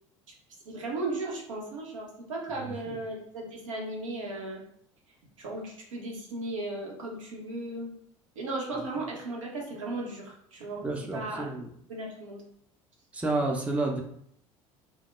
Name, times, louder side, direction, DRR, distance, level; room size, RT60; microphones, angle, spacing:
voice 1, 0.7-4.6 5.4-7.9 8.4-10.8 11.1-11.5 11.9-12.4, right 2 dB, 75° right, -1 dB, 0.6 m, -36 dB
voice 2, 10.8-11.7 13.1-14.0, right 2 dB, 10° right, 1 dB, 0.4 m, -30 dB
2.2 x 2.1 x 3.0 m, 0.67 s
figure-of-eight pair, 65°, 17 cm